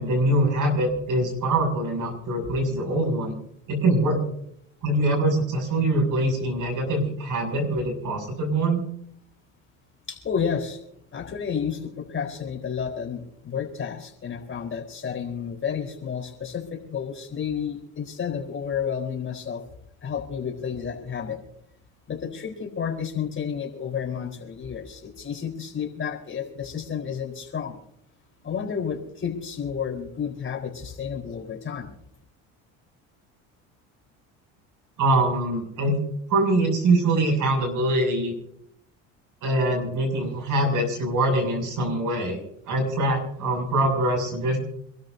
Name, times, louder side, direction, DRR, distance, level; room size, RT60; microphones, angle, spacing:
voice 1, 0.0-3.3 3.7-4.2 4.8-8.8 35.0-36.0 36.3-38.3 39.4-42.4 42.7-44.6, right 1 dB, 55° right, 3 dB, 7.2 m, -23 dB
voice 2, 10.1-10.8 11.1-19.6 20.0-21.4 22.1-27.8 28.4-31.9, left 7 dB, 30° left, 2 dB, 4.3 m, -31 dB
27.0 x 13.0 x 2.8 m, 0.70 s
supercardioid pair, 100°, 38 cm